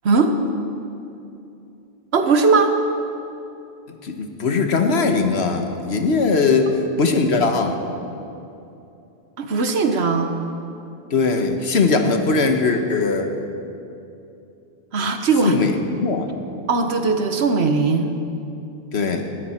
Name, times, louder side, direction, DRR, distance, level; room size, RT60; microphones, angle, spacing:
voice 1, 0.0-0.4 2.1-2.7 9.4-10.4 14.9-15.6 16.7-18.1, right 4 dB, 80° right, 6 dB, 1.3 m, -19 dB
voice 2, 4.0-6.7 7.0-7.8 11.1-13.3 15.4-16.3 18.9-19.3, left 4 dB, 80° left, 5 dB, 1.4 m, -20 dB
19.0 x 13.5 x 4.4 m, 2.8 s
omnidirectional pair, 1.1 m